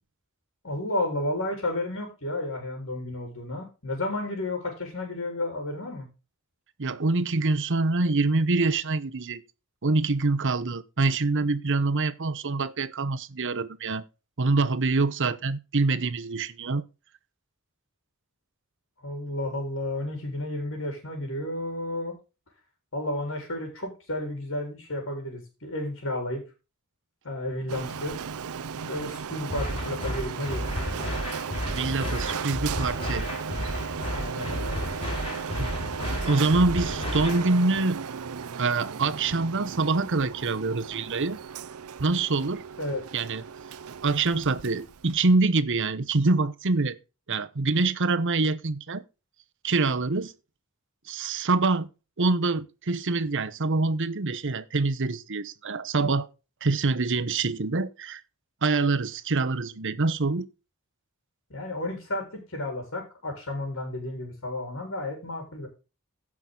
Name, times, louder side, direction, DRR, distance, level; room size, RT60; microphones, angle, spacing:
voice 1, 0.6-6.1 19.0-22.1 22.9-26.4 27.2-28.2 28.7-30.8 34.1-34.8 42.8-43.0 61.5-65.7, left 1 dB, 60° left, 4.0 m, -32 dB
voice 2, 6.8-9.4 9.8-14.0 14.4-16.8 31.7-33.3 35.6-35.7 36.2-38.0 38.6-41.4 42.0-42.6 43.1-43.4 44.0-47.0 47.3-49.0 49.6-50.3 51.1-51.9 52.2-56.3 56.6-58.2 58.6-60.5, right 3 dB, 55° right, 1.0 m, -25 dB
Printer, 27.7-45.4, right 6 dB, 80° right, 0.6 m, -36 dB
sound 1, 29.5-37.5, left 1 dB, 25° left, 5.7 m, -32 dB
15.5 x 6.1 x 3.9 m
head